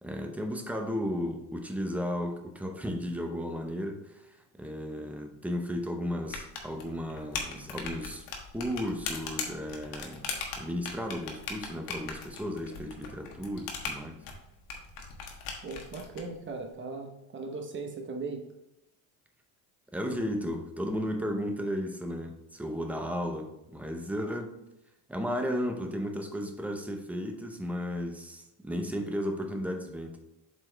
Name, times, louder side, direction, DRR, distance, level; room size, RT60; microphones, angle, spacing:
voice 1, 0.0-8.3 8.5-10.3 10.6-14.2 19.9-24.6 25.1-30.2, equal, 5° right, 3 dB, 0.6 m, -34 dB
sound 1, 6.3-16.2, left 5 dB, 85° left, 1.5 m, -39 dB
voice 2, 15.6-18.4, right 4 dB, 30° right, 3 dB, 0.9 m, -38 dB
7.6 x 4.3 x 3.3 m, 0.90 s
cardioid pair, 150°, 40 cm